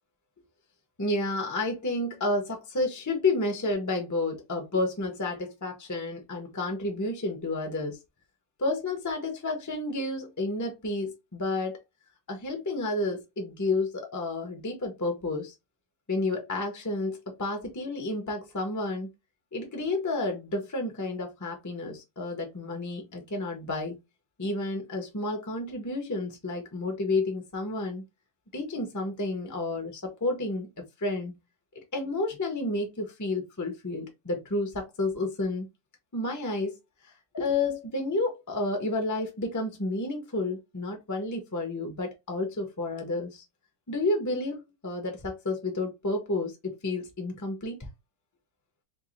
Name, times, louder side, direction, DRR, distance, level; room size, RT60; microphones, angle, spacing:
voice 1, 1.0-8.0 8.6-11.8 12.3-15.5 16.1-19.1 19.5-24.0 24.4-28.0 28.5-31.4 31.7-35.7 36.1-36.8 37.3-43.4 43.9-47.8, left 2 dB, 10° left, 1.0 m, -31 dB
3.8 x 3.3 x 3.2 m
omnidirectional pair, 2.1 m